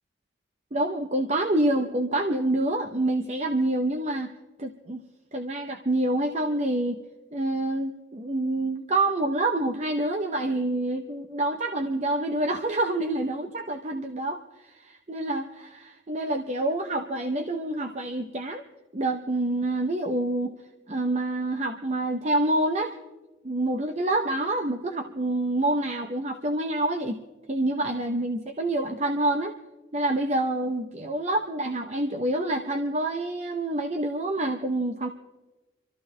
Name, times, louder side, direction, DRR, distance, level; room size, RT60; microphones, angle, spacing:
voice 1, 0.7-4.3 4.6-5.0 5.3-7.0 7.3-18.6 18.9-20.6 20.9-22.9 23.4-27.2 27.5-29.5 29.9-35.1, right 1 dB, 35° right, 5 dB, 0.7 m, -27 dB
26.0 x 14.0 x 3.2 m, 1.1 s
head